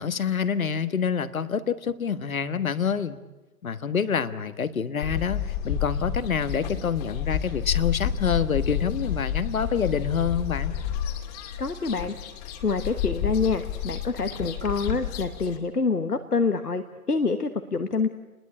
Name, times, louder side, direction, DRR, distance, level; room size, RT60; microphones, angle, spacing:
voice 1, 0.0-3.2 3.6-10.7, left 7 dB, 65° left, 12 dB, 1.5 m, -27 dB
sound 1, 5.0-15.6, left 9 dB, 25° left, 2.3 m, -30 dB
voice 2, 11.6-12.1 12.6-18.1, left 4 dB, 85° left, 8 dB, 1.4 m, -26 dB
29.0 x 21.0 x 8.5 m, 1.1 s
figure-of-eight pair, 135°, 45 cm